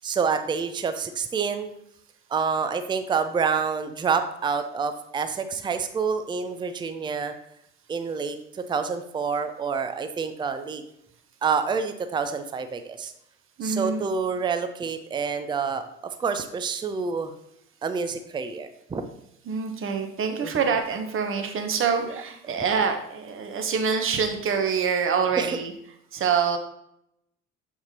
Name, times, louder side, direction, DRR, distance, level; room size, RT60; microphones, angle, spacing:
voice 1, 0.0-1.7 2.3-7.3 7.9-10.8 11.4-13.1 13.6-17.3 17.8-19.0 20.4-20.5 25.4-25.5, right 5 dB, 15° right, 9 dB, 0.5 m, -28 dB
voice 2, 13.6-14.1 19.4-25.7 26.1-26.6, right 6 dB, 35° right, 5 dB, 1.1 m, -25 dB
7.3 x 5.9 x 2.9 m, 0.78 s
figure-of-eight pair, 60°, 37 cm